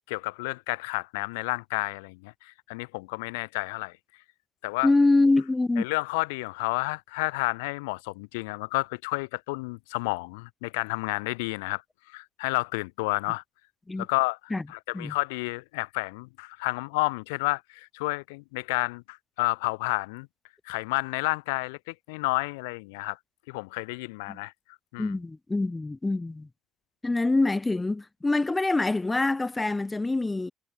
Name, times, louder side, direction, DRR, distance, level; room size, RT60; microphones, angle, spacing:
voice 1, 0.1-4.0 4.6-4.9 5.8-11.8 12.1-13.4 14.0-14.4 14.7-20.3 20.7-23.2 23.5-24.5 24.9-25.1, left 26 dB, 85° left, 0.7 m, -30 dB
voice 2, 4.8-5.8 13.9-14.1 14.5-14.6 14.9-15.1 24.3-24.4 25.0-26.5 27.0-30.5, left 2 dB, 20° left, 1.1 m, -25 dB
hypercardioid pair, 55°, 0 cm